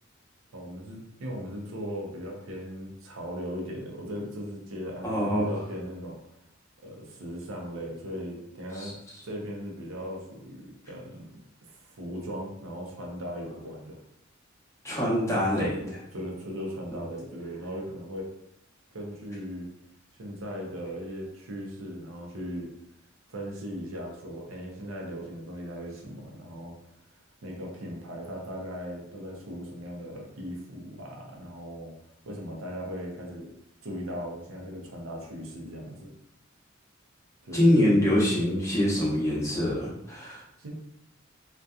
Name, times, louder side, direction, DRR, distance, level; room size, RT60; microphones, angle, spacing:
voice 1, 0.5-6.2 6.8-9.0 9.2-11.4 11.7-14.0 15.5-18.3 18.9-19.7 20.2-22.7 23.3-26.8 27.4-32.0 32.2-33.5 33.8-36.1 37.4-37.9 40.6-40.7, equal, 80° right, 0 dB, 0.6 m, -38 dB
voice 2, 5.0-5.5 8.7-8.9 14.8-15.7 16.9-17.0 37.5-40.4, left 1 dB, 15° left, -7 dB, 0.8 m, -24 dB
2.6 x 2.2 x 2.3 m, 0.79 s
head